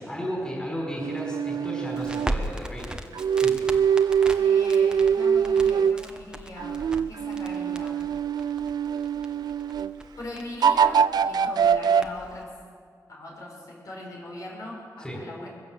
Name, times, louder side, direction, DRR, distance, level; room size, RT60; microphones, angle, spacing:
voice 1, 0.0-3.7 15.0-15.2, equal, 10° left, -2 dB, 5.2 m, -34 dB
sound 1, 1.0-2.3 3.1-6.0 6.6-9.9 10.6-12.0, right 7 dB, 80° right, 0.5 m, -23 dB
Crackle, 1.9-12.4, right 1 dB, 10° right, 1.3 m, -38 dB
voice 2, 4.4-8.0 10.2-12.5 13.1-15.5, left 1 dB, 60° left, -2 dB, 5.8 m, -40 dB
22.0 x 16.0 x 7.7 m, 2.1 s
wide cardioid pair, 130°, 7 cm